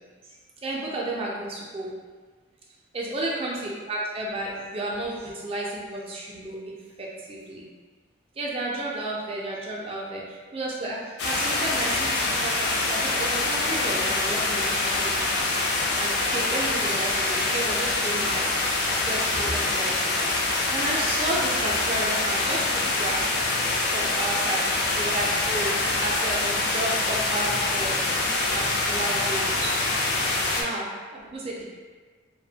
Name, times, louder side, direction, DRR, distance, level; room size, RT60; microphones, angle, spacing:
voice 1, 0.6-1.9 2.9-7.7 8.4-10.2 10.5-15.2 16.0-18.5 18.9-19.9 20.7-22.6 22.9-23.2 23.9-24.6 25.0-29.7 30.5-31.6, right 1 dB, 30° right, -3 dB, 0.3 m, -32 dB
sound 1, 11.2-30.6, left 2 dB, 55° left, 0.3 m, -25 dB
2.5 x 2.0 x 2.7 m, 1.5 s
head